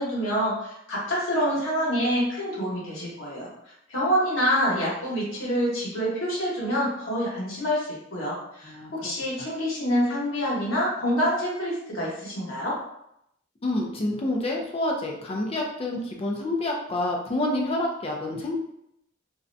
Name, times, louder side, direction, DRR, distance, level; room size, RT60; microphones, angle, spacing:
voice 1, 0.0-3.5 3.9-12.8, equal, 80° left, -5 dB, 1.0 m, -26 dB
voice 2, 8.6-9.1 13.6-18.6, left 1 dB, 30° left, 0 dB, 0.4 m, -28 dB
2.5 x 2.1 x 2.5 m, 0.77 s
head